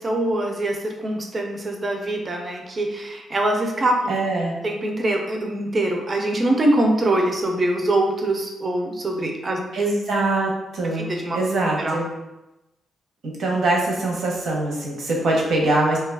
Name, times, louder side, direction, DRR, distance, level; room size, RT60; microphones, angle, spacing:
voice 1, 0.0-4.1 4.6-9.6 10.9-11.4 11.8-12.0, right 1 dB, 25° right, 2 dB, 0.4 m, -23 dB
voice 2, 4.1-4.6 9.7-12.1 13.2-16.0, right 2 dB, 60° right, -2 dB, 0.7 m, -23 dB
2.7 x 2.3 x 3.3 m, 0.97 s
wide cardioid pair, 160°, 0 cm